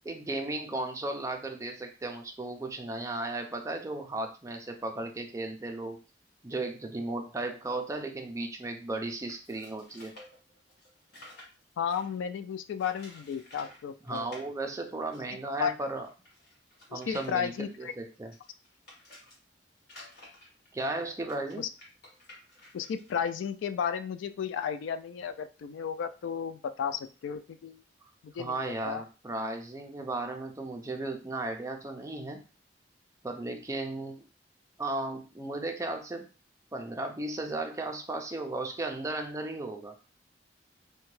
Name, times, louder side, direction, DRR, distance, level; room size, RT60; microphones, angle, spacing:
voice 1, 0.0-6.0 6.4-10.1 14.1-16.1 16.9-18.3 20.7-21.6 28.4-32.4 33.2-34.2 34.8-36.3 36.7-39.9, right 2 dB, 15° right, 3 dB, 0.4 m, -35 dB
sound 1, 9.3-12.2 12.8-13.8 14.1-14.4 15.1-15.2 15.4-15.5 16.0-19.4 19.8-23.1, left 1 dB, 55° left, 1.4 m, -52 dB
voice 2, 11.8-14.3 15.6-15.7 16.9-17.9 21.6-21.7 22.7-27.8 28.2-28.6 28.8-29.0, left 7 dB, 90° left, 11 dB, 0.3 m, -33 dB
2.7 x 2.2 x 3.1 m, 0.33 s
head